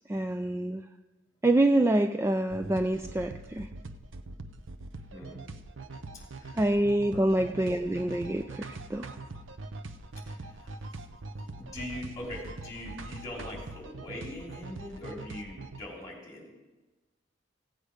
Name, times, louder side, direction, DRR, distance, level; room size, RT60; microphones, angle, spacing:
voice 1, 0.1-0.9 1.4-3.7 6.5-9.1, right 1 dB, 15° right, 7 dB, 0.3 m, -26 dB
sound 1, 2.5-15.8, right 2 dB, 90° right, 0.7 m, -43 dB
voice 2, 5.1-5.4 6.1-6.6 7.1-7.3 10.2-10.7 11.4-16.5, left 1 dB, 20° left, -2 dB, 3.2 m, -42 dB
16.0 x 8.3 x 5.0 m, 1.2 s
head